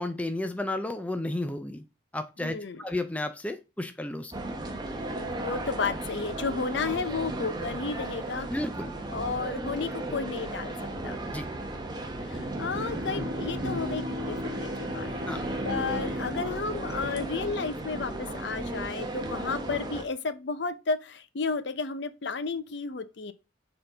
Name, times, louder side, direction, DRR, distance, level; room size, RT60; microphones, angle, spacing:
voice 1, 0.0-1.8 2.1-4.3 8.5-8.9 11.3-11.5 15.3-15.4, left 1 dB, 5° left, 0.4 m, -32 dB
voice 2, 2.4-2.8 5.1-8.5 9.1-10.7 11.0-11.2 12.3-15.1 15.6-23.3, left 4 dB, 60° left, 0.6 m, -32 dB
sound 1, 4.3-20.0, right 1 dB, 20° right, 0.9 m, -35 dB
Bowed string instrument, 12.6-18.1, left 1 dB, 55° right, 1.0 m, -39 dB
6.7 x 3.8 x 3.8 m
head